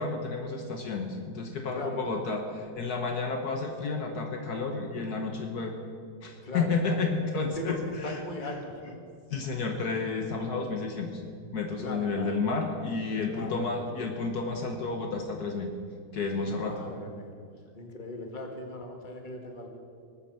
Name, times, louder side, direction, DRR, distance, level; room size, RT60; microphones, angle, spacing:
voice 1, 0.0-5.8 6.2-8.5 9.3-11.2 11.5-15.7 16.1-16.7, left 4 dB, 65° left, 4 dB, 1.7 m, -31 dB
voice 2, 6.4-7.0 7.5-9.1 11.8-12.4 13.1-13.8 16.5-17.3 17.7-19.7, left 2 dB, 30° left, 3 dB, 1.9 m, -39 dB
19.5 x 9.0 x 7.5 m, 2.2 s
omnidirectional pair, 1.8 m